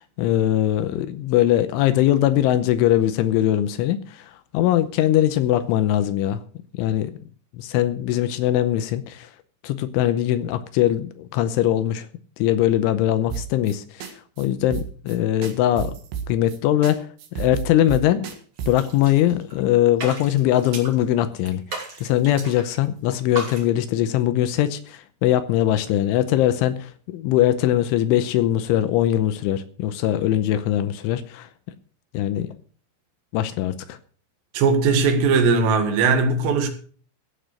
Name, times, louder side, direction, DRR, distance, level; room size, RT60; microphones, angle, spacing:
voice 1, 0.2-4.0 4.5-6.4 6.7-7.1 7.6-9.3 9.6-12.1 12.4-13.8 14.4-15.9 16.3-17.0 17.4-18.3 18.7-21.6 22.0-31.5 32.1-32.5 33.3-34.0, left 12 dB, 80° left, 3.1 m, -21 dB
sound 1, 13.3-13.8 14.0-14.1 14.4-14.5 14.7-15.2 15.4-16.6 16.8-16.9 17.2-18.9, right 8 dB, 65° right, 3.5 m, -31 dB
sound 2, 18.6-19.6 19.9-21.0 21.4-22.8 23.0-23.6, right 2 dB, 30° right, 2.8 m, -35 dB
voice 2, 34.5-36.7, right 4 dB, 85° right, 4.4 m, -19 dB
15.0 x 7.4 x 6.4 m
omnidirectional pair, 5.7 m